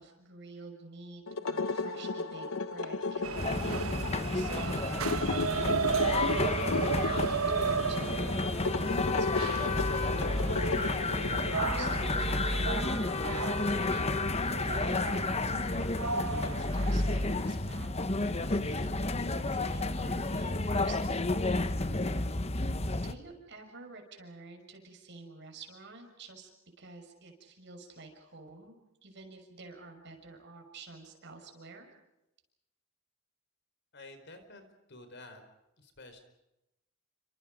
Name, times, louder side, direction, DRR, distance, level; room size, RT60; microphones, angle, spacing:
voice 1, 0.0-5.4 6.2-8.4 8.8-15.8 16.3-21.8 22.9-26.5 26.8-31.9, right 3 dB, 55° right, 4 dB, 6.2 m, -49 dB
sound 1, 1.3-12.0, left 3 dB, 75° left, 0.9 m, -35 dB
sound 2, 3.2-17.5, right 5 dB, 85° right, 1.2 m, -35 dB
sound 3, 3.3-23.1, left 2 dB, 30° left, 1.2 m, -31 dB
voice 2, 33.9-34.6 34.9-35.4 35.8-36.2, left 2 dB, 55° left, 8 dB, 4.7 m, -50 dB
30.0 x 25.5 x 5.2 m, 0.91 s
head